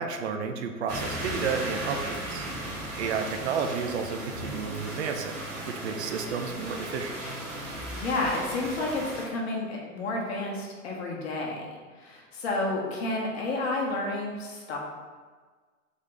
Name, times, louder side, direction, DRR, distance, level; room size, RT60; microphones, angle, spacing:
voice 1, 0.0-2.5 3.0-5.3 5.7-7.2, right 5 dB, 50° right, 5 dB, 0.5 m, -31 dB
sound 1, 0.9-9.3, right 1 dB, 30° right, 1.2 m, -36 dB
voice 2, 7.9-11.6 12.0-14.8, left 2 dB, 45° left, -2 dB, 1.1 m, -30 dB
3.6 x 3.1 x 3.8 m, 1.4 s
figure-of-eight pair, 115°, 45 cm